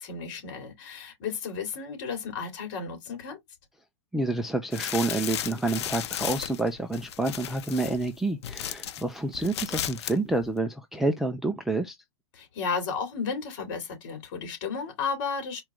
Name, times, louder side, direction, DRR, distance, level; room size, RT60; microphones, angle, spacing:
voice 1, 0.0-3.4 12.3-15.6, left 5 dB, 45° left, 3.1 m, -33 dB
voice 2, 4.1-12.0, right 2 dB, ahead, 0.3 m, -28 dB
sound 1, 4.7-9.0 9.3-10.2 10.4-10.5, left 11 dB, 65° left, 0.8 m, -34 dB
4.4 x 3.0 x 3.7 m
hypercardioid pair, 145°, 15 cm